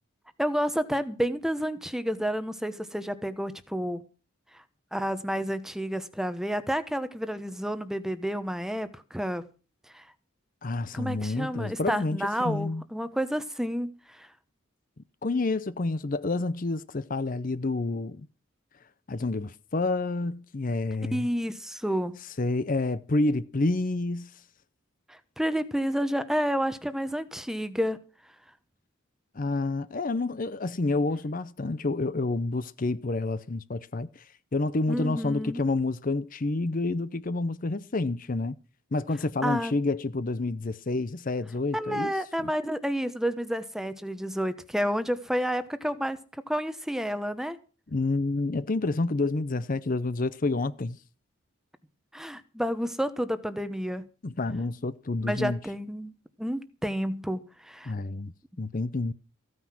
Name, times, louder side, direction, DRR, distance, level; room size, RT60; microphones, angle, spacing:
voice 1, 0.4-4.0 4.5-4.6 4.9-9.4 9.9-10.0 10.9-14.3 21.1-22.2 25.1-28.0 34.9-35.6 39.4-39.7 41.7-46.2 46.5-47.6 52.1-54.1 55.2-56.1 56.4-57.9, equal, ahead, 0.9 m, -30 dB
voice 2, 10.6-12.8 15.2-18.3 19.1-21.3 22.4-24.3 29.3-34.2 34.5-38.6 38.9-42.1 42.4-42.5 47.9-51.0 54.2-55.6 57.9-59.1, left 2 dB, 40° left, 0.6 m, -29 dB
15.0 x 9.5 x 6.0 m
head